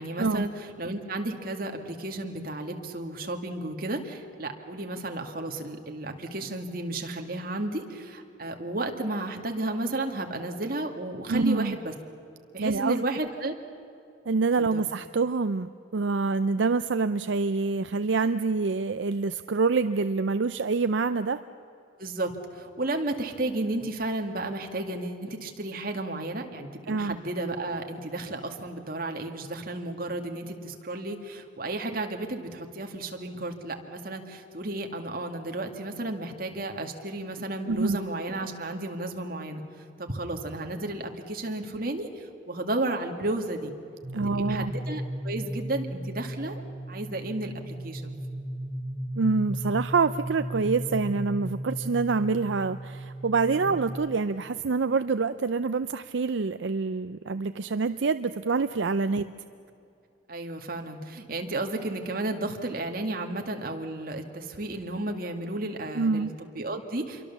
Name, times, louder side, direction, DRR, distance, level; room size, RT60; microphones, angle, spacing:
voice 1, 0.0-11.9 12.5-13.5 14.6-14.8 22.0-39.6 40.0-43.7 44.3-48.1 53.6-53.7 60.3-67.3, right 2 dB, 50° right, 4 dB, 2.1 m, -33 dB
voice 2, 11.3-11.8 12.6-13.0 14.3-21.4 26.9-27.2 37.7-38.0 44.1-44.7 49.2-59.3 66.0-66.3, right 4 dB, 75° right, 11 dB, 0.5 m, -26 dB
sound 1, 44.0-53.9, right 1 dB, 15° right, 4.5 m, -36 dB
27.0 x 23.5 x 7.2 m, 2.6 s
head